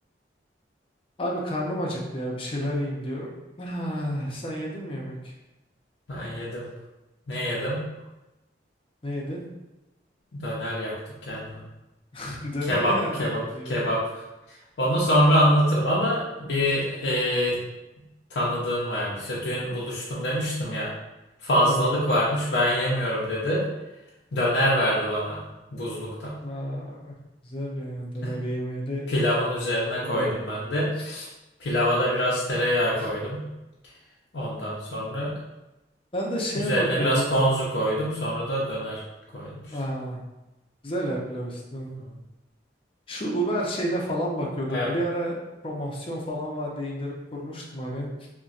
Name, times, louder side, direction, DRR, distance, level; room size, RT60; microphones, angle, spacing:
voice 1, 1.2-3.3 3.6-5.3 9.0-9.4 12.1-13.9 21.6-22.0 26.4-27.1 27.4-29.1 29.8-30.3 31.0-31.1 32.9-33.1 36.1-37.3 39.7-40.2 40.8-41.9 43.1-45.4 45.6-48.3, equal, 30° left, -2 dB, 0.5 m, -30 dB
voice 2, 6.1-6.6 7.3-7.9 10.3-10.9 11.3-11.6 12.7-13.4 13.7-14.0 14.8-17.5 18.3-20.9 21.4-23.6 24.3-25.4 25.7-26.3 28.2-28.3 29.1-31.3 31.6-33.4 34.3-35.3 36.7-39.0 39.3-39.6 44.7-44.9, equal, 80° left, -6 dB, 0.6 m, -25 dB
3.9 x 2.2 x 2.4 m, 1.0 s
head